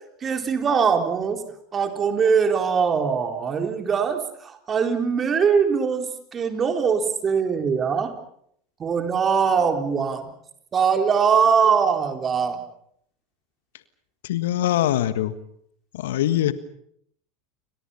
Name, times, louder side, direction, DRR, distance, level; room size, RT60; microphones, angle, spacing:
voice 1, 0.2-1.4 1.7-6.1 6.3-8.1 8.8-10.3 10.7-12.6, right 6 dB, 30° right, 5 dB, 4.1 m, -22 dB
voice 2, 14.2-15.3 15.9-16.5, left 12 dB, 70° left, 13 dB, 1.5 m, -22 dB
30.0 x 25.0 x 5.6 m, 0.68 s
hypercardioid pair, 80°, 0 cm